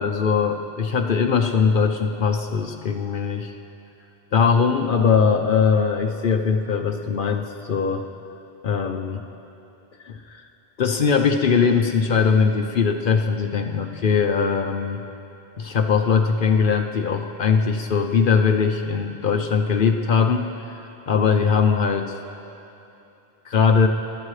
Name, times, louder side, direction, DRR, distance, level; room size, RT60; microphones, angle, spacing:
voice 1, 0.0-3.5 4.3-8.1 8.6-9.2 10.0-10.4 10.8-15.0 15.6-20.5 21.1-22.2 23.5-23.9, left 6 dB, 55° left, 5 dB, 0.8 m, -20 dB
22.0 x 12.5 x 3.2 m, 2.9 s
omnidirectional pair, 1.1 m